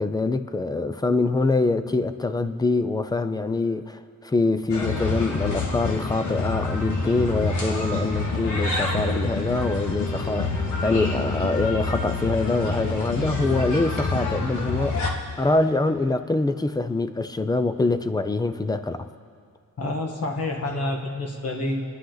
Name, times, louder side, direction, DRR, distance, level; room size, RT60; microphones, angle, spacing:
voice 1, 0.0-19.1, left 3 dB, 10° left, 11 dB, 0.4 m, -24 dB
sound 1, 4.7-15.1, left 3 dB, 65° left, 1.8 m, -27 dB
voice 2, 19.8-21.8, left 2 dB, 50° left, 2 dB, 1.6 m, -28 dB
29.0 x 10.0 x 3.9 m, 2.3 s
wide cardioid pair, 175°, 32 cm